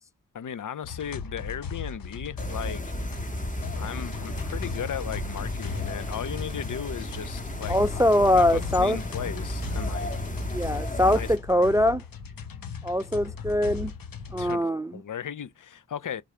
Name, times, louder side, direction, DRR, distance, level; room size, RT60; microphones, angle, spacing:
voice 1, 0.3-3.0 3.8-8.0 8.3-10.3 11.1-11.7 14.4-16.2, left 8 dB, 65° left, 0.6 m, -36 dB
sound 1, 0.8-14.6, left 5 dB, 80° left, 1.0 m, -37 dB
sound 2, 2.4-11.4, equal, 25° left, 1.7 m, -34 dB
voice 2, 7.7-9.0 10.5-12.0 12.8-13.9 14.3-14.9, left 1 dB, 10° right, 0.3 m, -22 dB
6.7 x 3.7 x 4.3 m
wide cardioid pair, 75°, 34 cm